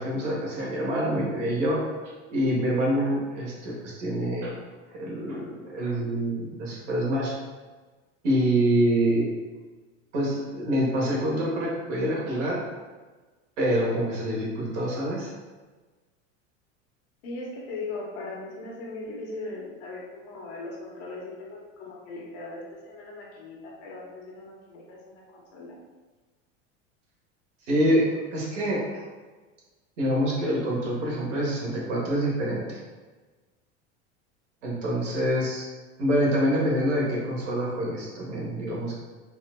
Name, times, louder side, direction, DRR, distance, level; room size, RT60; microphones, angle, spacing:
voice 1, 0.0-1.8 2.3-4.5 4.9-7.3 8.2-9.3 10.1-12.6 13.6-15.3 27.7-29.0 30.0-32.8 34.6-35.6 36.0-39.0, equal, 85° right, -4 dB, 1.3 m, -26 dB
voice 2, 17.2-25.7, left 2 dB, 70° left, -2 dB, 1.1 m, -39 dB
4.3 x 2.5 x 2.2 m, 1.3 s
hypercardioid pair, 100°, 36 cm